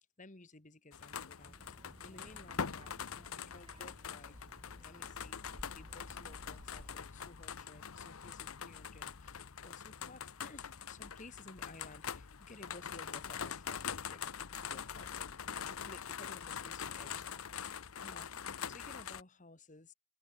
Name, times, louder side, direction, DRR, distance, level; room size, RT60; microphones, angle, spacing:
voice 1, 0.2-3.0 3.4-4.5 4.8-14.2 14.5-15.2 15.7-19.9, left 2 dB, 35° left, 1.8 m, -56 dB
sound 1, 0.9-19.2, left 7 dB, 90° left, 0.9 m, -44 dB
Child speech kid speaking, 1.4-7.0, right 1 dB, 25° right, 2.1 m, -57 dB
head